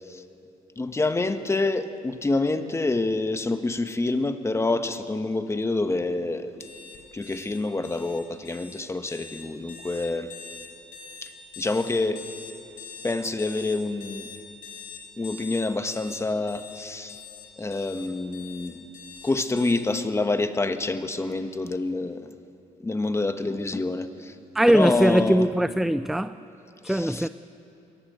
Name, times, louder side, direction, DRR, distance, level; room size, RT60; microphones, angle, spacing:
voice 1, 0.8-6.5 7.1-10.3 11.2-12.2 13.0-14.3 15.2-17.2 17.6-18.9 19.2-22.3 22.8-24.3 24.7-25.5 26.9-27.3, left 2 dB, 20° left, 1.4 m, -27 dB
sound 1, 6.6-19.7, left 5 dB, 80° left, 3.8 m, -43 dB
voice 2, 24.5-26.4 26.8-27.3, right 1 dB, ahead, 0.4 m, -21 dB
22.5 x 18.5 x 8.2 m
cardioid pair, 85°, 14 cm